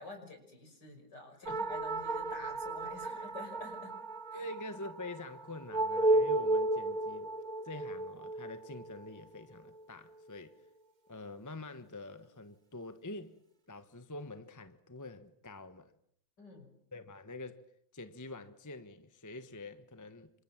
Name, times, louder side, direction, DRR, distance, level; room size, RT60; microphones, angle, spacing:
voice 1, 0.0-4.0 4.3-4.5 16.4-16.7, left 3 dB, 65° left, 6.5 m, -49 dB
sound 1, 1.5-10.3, right 2 dB, 30° right, 1.1 m, -34 dB
voice 2, 4.3-7.3 7.6-10.5 11.1-13.4 13.7-15.9 16.9-17.6 17.9-20.3, left 2 dB, 10° left, 1.1 m, -46 dB
28.5 x 26.5 x 7.5 m
omnidirectional pair, 2.0 m